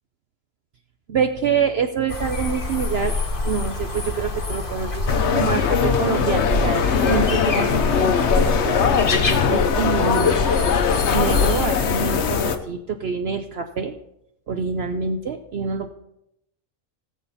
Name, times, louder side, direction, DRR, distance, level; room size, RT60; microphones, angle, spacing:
voice 1, 1.1-3.2 3.4-8.8 9.5-10.4 11.1-13.9 14.5-15.9, right 6 dB, 55° right, 6 dB, 0.9 m, -26 dB
sound 1, 2.1-11.7, left 3 dB, 40° left, 1.5 m, -26 dB
sound 2, 5.1-12.6, left 6 dB, 60° left, 1.1 m, -21 dB
18.5 x 7.4 x 4.1 m, 0.81 s
omnidirectional pair, 1.4 m